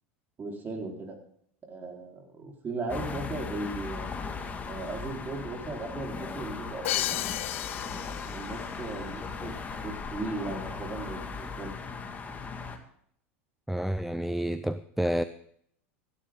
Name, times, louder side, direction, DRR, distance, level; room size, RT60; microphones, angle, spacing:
voice 1, 0.4-1.2 1.7-4.1 4.7-7.5 8.2-9.5 9.8-11.7, right 3 dB, 25° right, 1 dB, 4.5 m, -37 dB
sound 1, 2.9-12.8, left 5 dB, 25° left, 2.1 m, -38 dB
Crash cymbal, 6.8-8.7, left 15 dB, 75° left, 0.4 m, -33 dB
voice 2, 13.7-15.2, equal, 5° right, 12 dB, 0.6 m, -29 dB
16.5 x 11.5 x 3.8 m, 0.66 s
hypercardioid pair, 100°, 7 cm